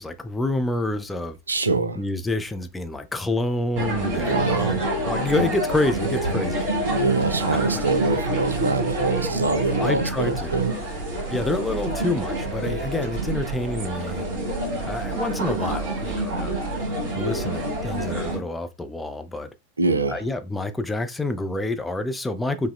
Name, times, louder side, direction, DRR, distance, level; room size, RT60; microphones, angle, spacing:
voice 1, 0.0-1.4 2.0-6.7 7.5-7.8 9.8-10.6 11.3-14.3 14.8-16.6 17.1-19.5 20.1-22.7, left 2 dB, 10° left, 0.3 m, -28 dB
voice 2, 1.5-2.0 4.1-4.8 6.8-10.7 19.8-20.2, right 3 dB, 75° right, 0.4 m, -24 dB
sound 1, 3.8-18.4, right 1 dB, 50° right, 2.0 m, -27 dB
5.3 x 2.0 x 2.3 m
figure-of-eight pair, 90°, 0 cm